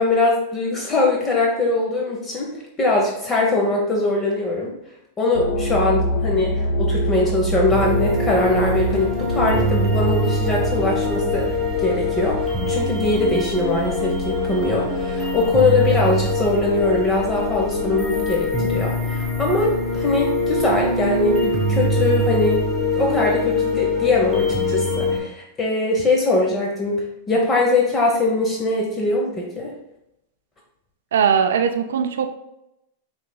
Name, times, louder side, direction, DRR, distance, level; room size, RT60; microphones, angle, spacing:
voice 1, 0.0-2.5 2.8-4.7 5.2-11.5 11.8-22.7 22.9-29.7, left 2 dB, 25° left, -1 dB, 0.9 m, -21 dB
sound 1, 5.4-22.8, equal, 90° left, 0.8 m, -29 dB
sound 2, 7.7-25.2, left 1 dB, 5° right, 1.3 m, -23 dB
voice 2, 31.1-32.3, right 7 dB, 80° right, 7 dB, 0.4 m, -20 dB
5.5 x 3.3 x 2.2 m, 0.84 s
hypercardioid pair, 115°, 0 cm